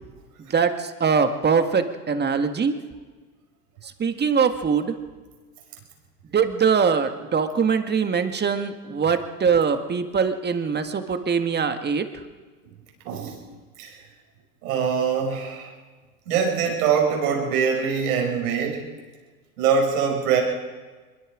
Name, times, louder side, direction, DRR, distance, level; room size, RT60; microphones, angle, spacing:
voice 1, 0.4-2.8 3.8-5.0 6.3-12.1, right 6 dB, 20° right, 8 dB, 1.7 m, -22 dB
voice 2, 13.0-13.4 13.8-14.0 14.6-15.7 16.3-18.8 19.6-20.4, right 6 dB, 70° right, 1 dB, 5.7 m, -23 dB
24.5 x 22.0 x 5.0 m, 1.4 s
hypercardioid pair, 85°, 46 cm